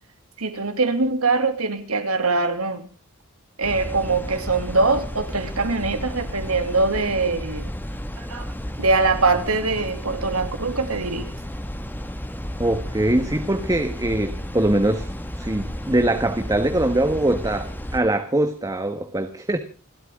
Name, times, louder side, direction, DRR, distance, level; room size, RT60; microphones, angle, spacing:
voice 1, 0.4-2.8 3.6-7.7 8.2-8.5 8.8-11.3, right 3 dB, 80° right, 2.8 m, -23 dB
sound 1, 3.6-18.0, equal, 10° left, 1.8 m, -33 dB
voice 2, 12.6-19.6, right 1 dB, 15° right, 1.3 m, -22 dB
29.5 x 12.5 x 3.7 m
head